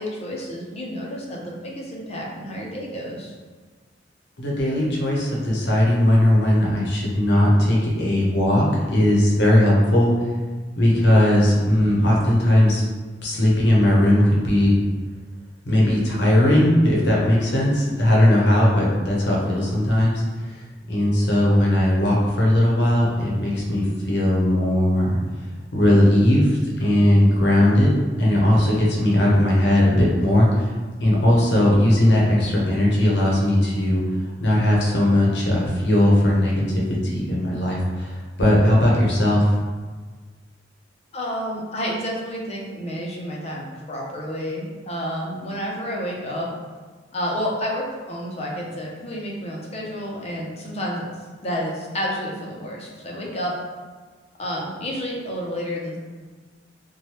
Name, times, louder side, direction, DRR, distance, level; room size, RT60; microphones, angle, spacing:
voice 1, 0.0-3.3 41.1-46.5 47.1-51.0 51.4-53.5 54.4-56.0, equal, 35° left, -2 dB, 0.5 m, -30 dB
voice 2, 4.4-10.1 10.8-12.8 13.2-14.8 15.7-20.2 20.9-25.2 25.7-27.9 28.2-30.7 31.0-34.0 34.4-39.6, left 1 dB, 70° left, -4 dB, 0.8 m, -18 dB
3.1 x 2.2 x 2.9 m, 1.4 s
head